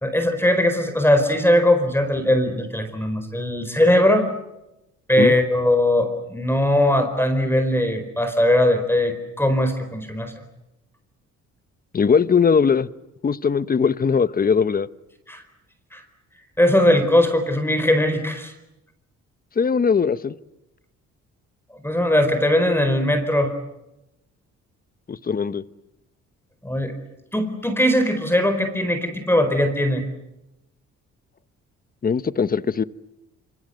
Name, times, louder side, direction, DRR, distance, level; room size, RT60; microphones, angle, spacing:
voice 1, 0.0-4.3 5.1-10.3 15.3-15.4 15.9-16.0 16.6-18.5 21.8-23.5 26.6-26.9 27.3-30.0, left 1 dB, 10° left, 4.5 m, -20 dB
voice 2, 11.9-12.9 13.2-14.9 19.6-20.3 25.1-25.6 32.0-32.8, left 6 dB, 30° left, 1.0 m, -20 dB
26.0 x 26.0 x 8.0 m
cardioid pair, 90°, 30 cm